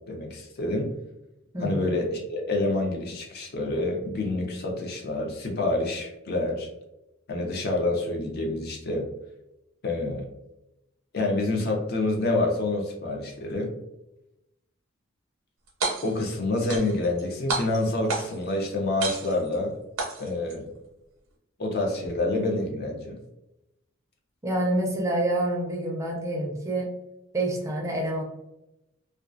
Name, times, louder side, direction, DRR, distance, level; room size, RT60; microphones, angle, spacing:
voice 1, 0.1-0.9 1.6-6.7 7.3-9.0 9.8-10.3 11.1-13.7 16.0-19.7 20.2-20.7 21.6-23.1, left 2 dB, 50° left, 1 dB, 0.5 m, -27 dB
sound 1, 15.7-16.3 16.7-17.2 17.5-18.5 19.0-19.5 20.0-20.5, right 3 dB, 85° right, 0.6 m, -30 dB
voice 2, 24.4-26.9 27.3-28.2, right 1 dB, 15° right, -1 dB, 0.4 m, -27 dB
2.2 x 2.2 x 2.4 m, 0.90 s
head